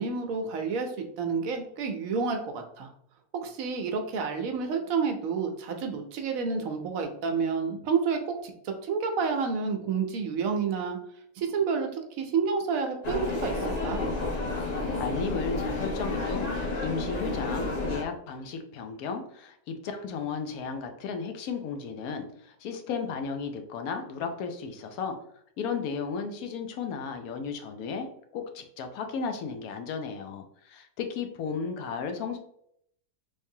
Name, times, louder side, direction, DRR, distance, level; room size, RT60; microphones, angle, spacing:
voice 1, 0.0-2.9 3.3-11.0 11.4-14.0, right 5 dB, 70° right, 4 dB, 1.0 m, -29 dB
sound 1, 13.0-18.0, left 2 dB, 50° left, 0.5 m, -31 dB
voice 2, 15.0-25.2 25.6-28.1 28.3-32.4, left 5 dB, 80° left, 5 dB, 1.0 m, -34 dB
3.2 x 3.2 x 2.7 m, 0.69 s
omnidirectional pair, 1.6 m